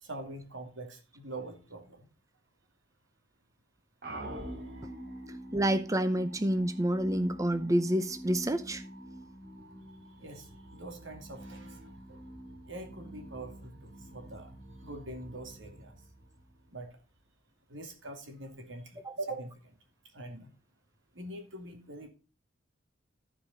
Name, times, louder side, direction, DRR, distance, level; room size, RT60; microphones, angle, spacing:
voice 1, 0.0-2.1 10.2-12.2 12.7-14.5 14.8-16.0 16.7-16.9 17.7-19.7 20.1-20.5 21.1-22.1, right 2 dB, 80° right, 2.4 m, -43 dB
sound 1, 4.0-16.9, right 1 dB, 55° right, 2.1 m, -46 dB
voice 2, 5.5-8.8 19.0-19.2, right 1 dB, 15° right, 0.6 m, -28 dB
14.0 x 5.0 x 4.0 m
head